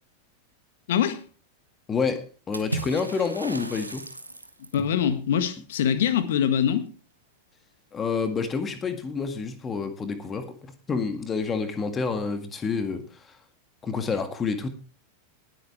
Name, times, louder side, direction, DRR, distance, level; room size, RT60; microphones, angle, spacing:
voice 1, 0.9-1.2 4.7-6.9, left 8 dB, 60° left, 11 dB, 1.6 m, -23 dB
voice 2, 1.9-4.1 7.9-13.3 13.8-14.7, left 5 dB, 20° left, 8 dB, 1.8 m, -28 dB
Water / Splash splatter, 2.5-4.9, right 2 dB, 85° right, 1.3 m, -35 dB
19.5 x 8.6 x 3.3 m, 0.35 s
figure-of-eight pair, 90°, 0 cm